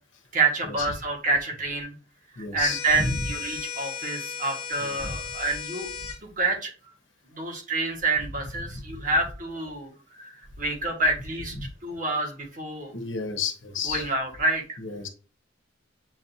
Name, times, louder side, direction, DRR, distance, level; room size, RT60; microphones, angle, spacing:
voice 1, 0.3-1.9 2.5-5.9 6.2-6.7 7.3-11.5 11.8-12.9 13.8-14.8, right 3 dB, 45° right, 0 dB, 1.4 m, -28 dB
voice 2, 2.4-3.1 4.8-5.2 6.0-6.1 8.7-8.8 11.6-11.7 12.9-14.0 14.8-15.1, left 4 dB, 75° left, 5 dB, 0.9 m, -32 dB
sound 1, 2.6-6.2, left 7 dB, 30° left, 0.8 m, -35 dB
7.5 x 2.5 x 2.7 m, 0.37 s
head